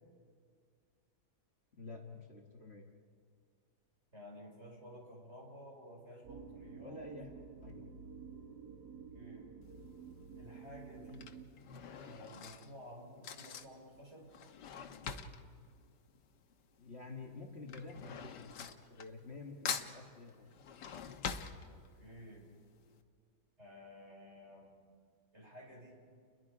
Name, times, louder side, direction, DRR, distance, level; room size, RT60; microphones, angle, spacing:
voice 1, 1.7-2.9 6.8-7.3 7.6-7.8 16.8-20.5, left 3 dB, 40° left, 1 dB, 1.9 m, -49 dB
voice 2, 4.1-7.1 9.1-9.5 10.4-11.3 12.0-14.3 21.7-22.5 23.6-24.8 25.3-26.0, equal, 40° right, -2 dB, 5.6 m, -53 dB
sound 1, 6.2-11.5, right 6 dB, 70° right, 2.1 m, -51 dB
Drawer open or close / Cutlery silverware, 9.6-10.0 10.9-16.8 17.0-19.4 19.6-22.2 22.6-22.7 22.9-23.0, left 6 dB, 80° left, 1.7 m, -44 dB
30.0 x 21.5 x 5.0 m, 2.1 s
omnidirectional pair, 1.8 m